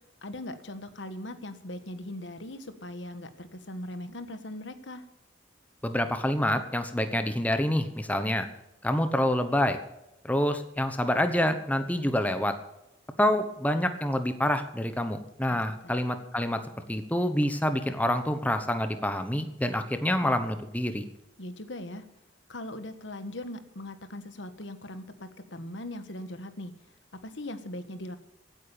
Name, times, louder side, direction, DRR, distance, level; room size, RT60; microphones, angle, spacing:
voice 1, 0.2-5.1 15.5-15.6 15.8-16.0 21.4-22.0 22.5-26.7 27.2-28.2, left 1 dB, 70° left, 10 dB, 1.4 m, -40 dB
voice 2, 5.8-8.5 8.8-9.8 10.2-12.5 13.2-16.6 16.9-21.1, left 1 dB, 10° left, 8 dB, 1.0 m, -27 dB
16.0 x 8.9 x 6.9 m, 0.88 s
head